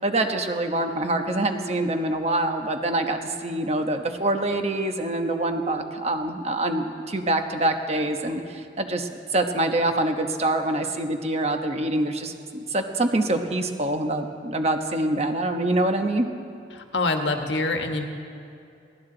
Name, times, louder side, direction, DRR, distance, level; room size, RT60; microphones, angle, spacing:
voice 1, 0.0-16.3, right 1 dB, 35° right, 5 dB, 1.1 m, -25 dB
voice 2, 16.7-18.0, left 2 dB, 80° left, 5 dB, 1.4 m, -25 dB
22.0 x 16.5 x 3.9 m, 2.6 s
head